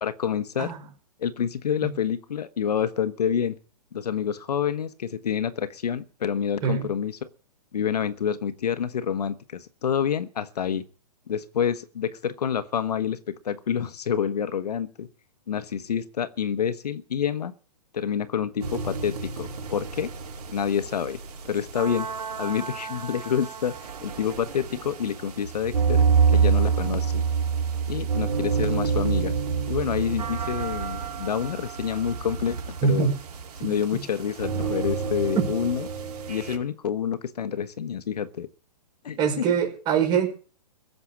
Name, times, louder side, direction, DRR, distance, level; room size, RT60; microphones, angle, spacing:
voice 1, 0.0-0.7 1.2-3.6 3.9-7.3 7.7-10.8 11.3-15.1 15.5-17.5 17.9-20.1 20.5-21.2 21.5-22.1 22.4-26.0 26.3-27.2 27.9-29.3 29.7-33.1 33.6-35.9 36.3-38.5 39.0-39.4, left 8 dB, 75° left, 1.3 m, -28 dB
sound 1, 18.6-36.6, right 6 dB, 70° right, 4.9 m, -28 dB
voice 2, 32.8-33.1 33.6-33.8 35.4-35.5 39.2-40.3, right 7 dB, 20° right, 5.2 m, -23 dB
16.5 x 6.8 x 8.5 m
hypercardioid pair, 160°, 20 cm